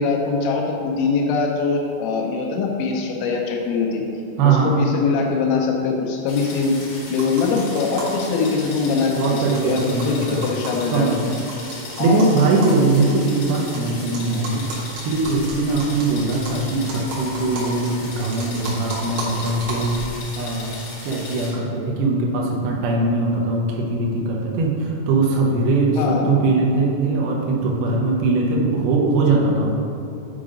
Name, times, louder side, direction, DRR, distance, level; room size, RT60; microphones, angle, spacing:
voice 1, 0.0-4.0 4.4-6.8 7.1-9.2 9.6-11.1 12.0-12.3 26.0-26.3, left 4 dB, 90° left, 0 dB, 3.4 m, -22 dB
voice 2, 4.4-4.7 9.1-10.5 10.9-11.2 12.0-14.7 15.0-20.8 21.0-29.7, right 3 dB, 90° right, -2 dB, 2.1 m, -21 dB
sound 1, 6.3-21.5, left 2 dB, 65° left, 3.5 m, -37 dB
sound 2, 7.2-8.3 8.6-8.7 8.9-9.0 9.2-13.8 14.1-20.1, right 2 dB, 65° right, 3.6 m, -34 dB
8.4 x 3.9 x 5.0 m, 2.7 s
omnidirectional pair, 5.7 m